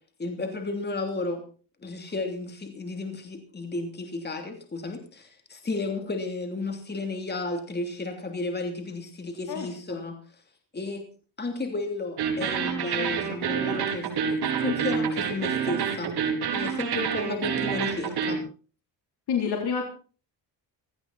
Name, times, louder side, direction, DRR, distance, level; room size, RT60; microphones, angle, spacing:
voice 1, 0.2-1.4 1.8-10.4 10.7-11.0 11.4-14.1 14.6-16.1 16.5-18.4, left 3 dB, 25° left, 5 dB, 3.1 m, -33 dB
voice 2, 9.5-10.0 19.3-19.9, left 6 dB, 65° left, 1 dB, 3.9 m, -28 dB
sound 1, 12.2-18.4, right 7 dB, 65° right, 4.3 m, -28 dB
17.0 x 15.0 x 4.3 m, 0.38 s
cardioid pair, 105°, 41 cm